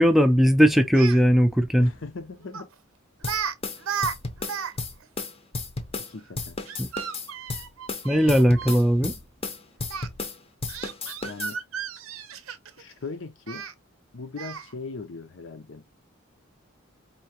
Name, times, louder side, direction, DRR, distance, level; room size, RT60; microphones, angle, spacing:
voice 1, 0.0-1.9 6.8-6.9 8.0-9.1, equal, ahead, 0.5 m, -18 dB
Speech, 0.8-1.2 2.5-2.7 3.2-3.5 3.8-4.7 5.0-5.1 6.7-8.8 9.9-10.1 10.7-12.8 13.5-13.7 14.4-14.7, right 7 dB, 85° right, 0.7 m, -33 dB
voice 2, 1.8-2.7 6.1-6.6 11.2-11.6 12.8-13.6 14.1-15.8, left 3 dB, 65° left, 0.7 m, -38 dB
sound 1, 3.2-6.1 6.4-10.4 10.6-11.5, left 3 dB, 30° left, 0.7 m, -33 dB
4.5 x 2.8 x 2.8 m
head